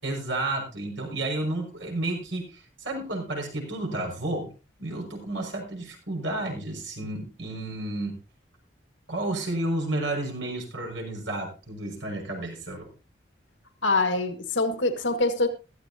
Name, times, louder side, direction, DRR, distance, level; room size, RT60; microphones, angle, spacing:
voice 1, 0.0-4.5 4.8-8.2 9.1-12.9, right 2 dB, 80° right, 1 dB, 5.9 m, -31 dB
voice 2, 13.8-15.5, left 2 dB, 75° left, 7 dB, 1.7 m, -24 dB
15.5 x 13.0 x 2.8 m, 0.30 s
head